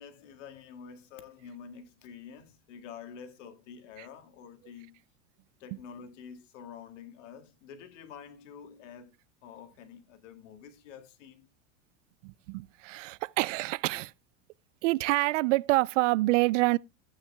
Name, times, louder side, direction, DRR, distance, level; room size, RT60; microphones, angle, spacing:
voice 1, 0.0-5.0 5.6-9.1 9.4-11.5, left 7 dB, 80° left, 1.9 m, -48 dB
voice 2, 12.2-14.1 14.8-16.8, right 21 dB, 80° right, 0.5 m, -27 dB
14.5 x 9.0 x 2.2 m
supercardioid pair, 175°, 36 cm